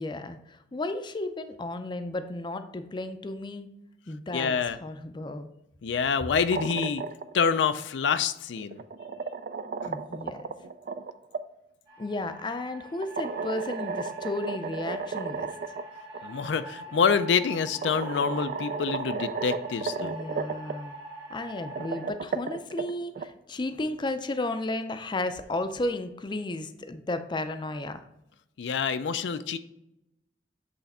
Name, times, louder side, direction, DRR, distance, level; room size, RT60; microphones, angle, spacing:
voice 1, 0.0-3.7 4.1-4.5 4.8-5.5 9.8-10.5 12.0-15.5 20.0-20.9 21.3-28.0, left 2 dB, 25° left, 9 dB, 0.4 m, -33 dB
voice 2, 4.3-4.8 5.8-7.0 7.3-8.8 16.2-20.2 28.6-29.6, left 6 dB, 85° left, 11 dB, 0.4 m, -26 dB
sound 1, 6.3-7.4 8.6-11.4 13.0-15.8 16.1-16.2 17.3-17.4 17.8-20.7 21.6-23.3, right 5 dB, 50° right, 0.3 m, -34 dB
sound 2, 11.9-22.1, right 1 dB, 25° right, 1.2 m, -44 dB
8.1 x 3.3 x 4.2 m, 0.82 s
head